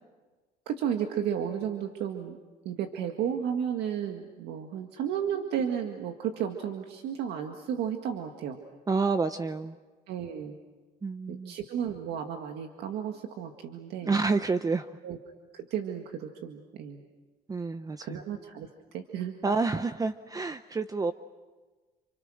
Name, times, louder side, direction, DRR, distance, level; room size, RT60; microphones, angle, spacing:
voice 1, 0.7-2.4 2.7-8.6 10.1-10.6 11.3-14.2 15.0-15.2 15.5-17.0 18.0-18.7 18.9-19.4, right 8 dB, 80° right, 4 dB, 1.9 m, -33 dB
voice 2, 8.9-9.8 11.0-11.5 14.0-14.9 17.5-18.2 19.4-21.1, right 4 dB, 20° right, 10 dB, 0.8 m, -28 dB
30.0 x 28.0 x 6.4 m, 1.3 s
cardioid pair, 110°, 17 cm